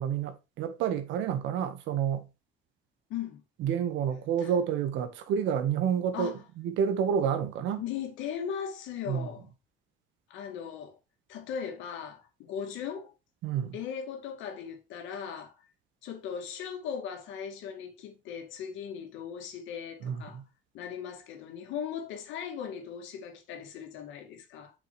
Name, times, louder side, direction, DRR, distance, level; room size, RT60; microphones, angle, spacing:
voice 1, 0.0-2.2 3.6-7.8 9.1-9.3 13.4-13.8 20.0-20.4, right 8 dB, 85° right, 1.4 m, -29 dB
voice 2, 3.1-3.4 4.4-4.5 6.1-6.4 7.8-9.5 10.3-11.0 11.3-13.1 13.7-15.5 16.0-20.4 20.7-24.7, left 8 dB, 85° left, 2.2 m, -38 dB
7.8 x 6.0 x 3.3 m
cardioid pair, 150°, 19 cm